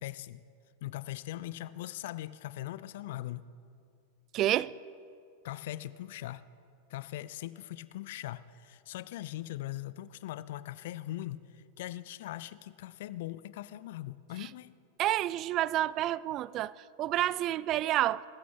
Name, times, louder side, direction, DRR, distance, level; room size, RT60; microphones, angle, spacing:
voice 1, 0.0-0.4 0.8-3.5 5.4-6.4 6.9-14.7, left 14 dB, 55° left, 0.5 m, -40 dB
voice 2, 4.3-4.7 15.0-18.2, right 14 dB, 35° right, 0.3 m, -29 dB
20.5 x 14.0 x 3.5 m
figure-of-eight pair, 90°, 0 cm